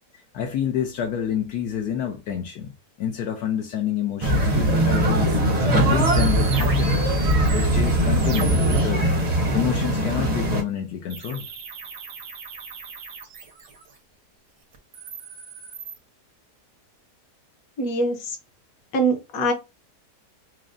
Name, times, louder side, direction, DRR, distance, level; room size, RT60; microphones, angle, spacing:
voice 1, 0.3-2.7 3.0-5.3 5.7-7.2 7.5-9.1 9.5-11.5, left 9 dB, 75° left, 1.2 m, -28 dB
sound 1, 4.2-10.6, right 1 dB, 35° right, 0.6 m, -21 dB
sound 2, 6.0-8.8 11.1-13.9 14.7-16.0, right 4 dB, 80° right, 1.6 m, -35 dB
voice 2, 17.8-18.4 18.9-19.5, right 2 dB, 60° left, 1.3 m, -23 dB
6.1 x 2.0 x 2.5 m
omnidirectional pair, 1.8 m